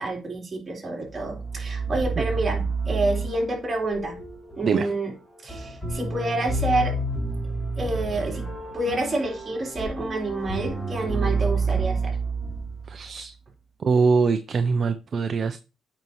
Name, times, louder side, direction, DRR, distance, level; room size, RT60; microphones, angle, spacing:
voice 1, 0.0-4.2 4.6-5.1 5.4-6.9 7.8-8.4 8.7-12.1, right 2 dB, 30° right, 3.8 m, -28 dB
sound 1, 1.1-13.2, right 3 dB, ahead, 3.1 m, -29 dB
voice 2, 12.9-13.3 13.8-15.6, right 5 dB, 45° right, 0.6 m, -23 dB
8.7 x 5.3 x 3.2 m
cardioid pair, 90°, 0 cm